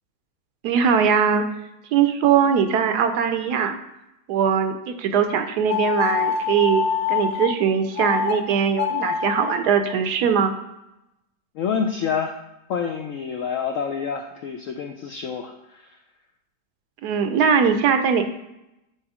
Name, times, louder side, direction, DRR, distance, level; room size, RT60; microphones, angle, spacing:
voice 1, 0.6-1.4 1.9-3.8 4.3-10.5 17.0-18.2, right 7 dB, 70° right, 8 dB, 1.1 m, -21 dB
sound 1, 5.7-7.5 7.9-8.3 8.7-9.5, left 7 dB, 65° left, 1.3 m, -24 dB
voice 2, 11.5-12.4 12.7-16.0, left 6 dB, 80° left, 4 dB, 0.7 m, -27 dB
8.6 x 3.0 x 4.8 m, 0.89 s
omnidirectional pair, 1.9 m